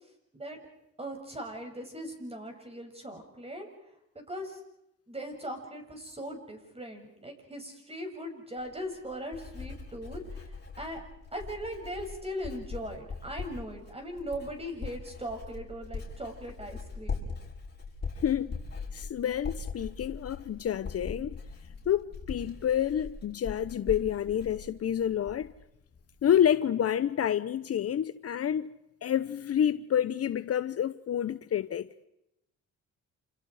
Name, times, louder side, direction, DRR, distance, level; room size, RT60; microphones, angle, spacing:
voice 1, 1.0-3.7 4.1-4.6 5.1-11.0 11.3-17.3, equal, 20° right, 7.4 m, -39 dB
Writing, 8.6-25.6 25.9-26.4, left 4 dB, 35° left, 7.4 m, -41 dB
voice 2, 18.2-18.6 18.9-21.4 21.9-25.5 26.2-28.7 29.0-31.9, left 9 dB, 50° left, 0.9 m, -28 dB
29.0 x 28.0 x 5.0 m
cardioid pair, 90°, 30 cm